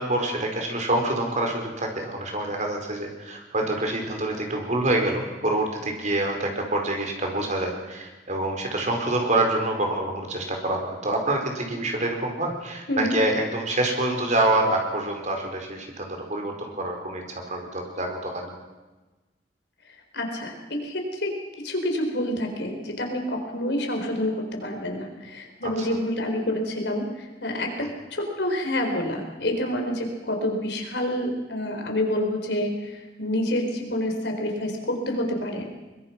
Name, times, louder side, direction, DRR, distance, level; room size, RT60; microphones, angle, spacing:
voice 1, 0.0-18.5 25.6-25.7 27.8-27.9, right 2 dB, 45° right, 2 dB, 4.6 m, -26 dB
voice 2, 20.1-21.4 21.6-35.7, left 1 dB, 75° left, 3 dB, 4.3 m, -28 dB
23.0 x 22.0 x 6.0 m, 1.2 s
head